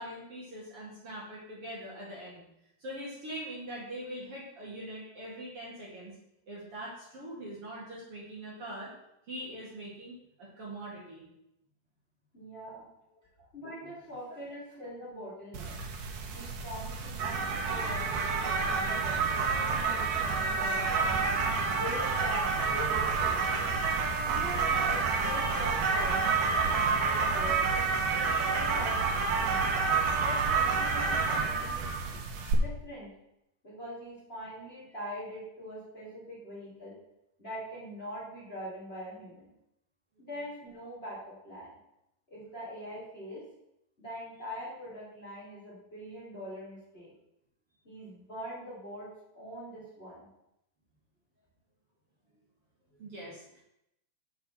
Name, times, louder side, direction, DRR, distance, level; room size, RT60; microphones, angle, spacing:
voice 1, 0.0-2.4 2.8-6.1 6.5-8.9 9.3-11.2 13.4-13.5 52.9-53.6, right 1 dB, 50° right, -5 dB, 2.8 m, -42 dB
voice 2, 12.3-12.9 13.5-15.7 16.3-21.2 21.7-23.6 24.2-27.6 28.1-29.1 29.4-29.7 30.2-32.2 32.6-33.1 33.6-36.9 37.4-39.5 40.2-41.8 42.3-43.4 44.0-47.1 47.8-50.3, equal, 20° left, -7 dB, 3.2 m, -43 dB
sound 1, 15.5-32.5, right 4 dB, 80° right, 2.7 m, -29 dB
7.1 x 5.3 x 7.1 m, 0.82 s
omnidirectional pair, 3.7 m